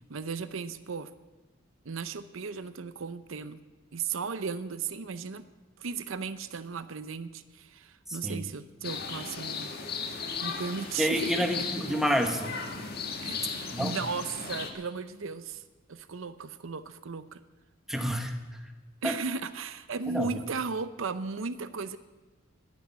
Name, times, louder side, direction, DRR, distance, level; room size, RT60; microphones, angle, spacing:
voice 1, 0.1-1.1 1.8-3.6 3.9-5.4 5.8-9.7 10.4-11.4 13.2-15.6 15.9-17.4 19.0-22.0, right 5 dB, 75° right, 13 dB, 0.7 m, -35 dB
sound 1, 8.8-14.7, left 5 dB, 50° left, 1.7 m, -36 dB
voice 2, 11.0-12.6 13.7-13.9 17.9-18.4 19.0-19.2 20.1-20.4, equal, ahead, 5 dB, 1.2 m, -28 dB
12.5 x 9.8 x 9.7 m, 1.2 s
head